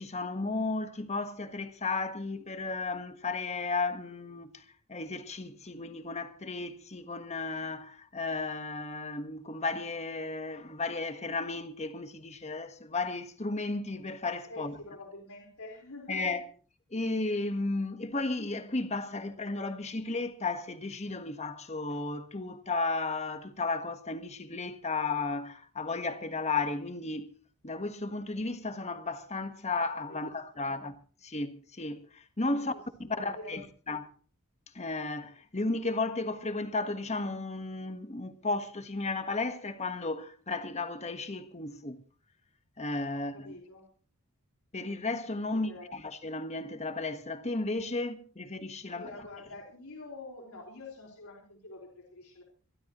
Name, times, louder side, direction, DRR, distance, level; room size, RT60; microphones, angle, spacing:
voice 1, 0.0-4.6 4.9-14.8 16.1-16.4 16.9-27.3 27.6-30.9 31.2-32.7 33.0-33.6 33.9-34.1 34.7-42.0 42.8-43.5 44.7-49.1, left 3 dB, 30° left, 1.4 m, -34 dB
voice 2, 14.5-16.3 30.1-30.9 32.5-33.6 43.1-43.9 45.5-45.9 48.9-52.4, left 2 dB, 80° left, 4.3 m, -47 dB
26.5 x 12.5 x 3.1 m
head